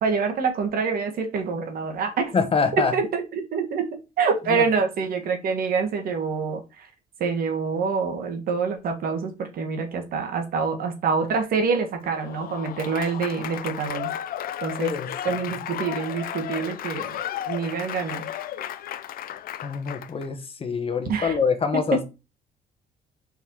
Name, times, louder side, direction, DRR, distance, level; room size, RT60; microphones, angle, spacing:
voice 1, 0.0-2.3 2.9-3.9 4.2-6.9 7.2-14.1 14.6-14.9 15.3-18.3 21.1-21.4, right 5 dB, 60° right, 5 dB, 1.8 m, -26 dB
voice 2, 2.3-2.9 4.5-4.6 14.8-15.4 19.6-22.0, left 5 dB, 35° left, 8 dB, 1.3 m, -25 dB
Applause / Crowd, 12.1-20.3, left 11 dB, 60° left, 0.6 m, -34 dB
5.6 x 4.2 x 4.8 m, 0.27 s
cardioid pair, 110°, 17 cm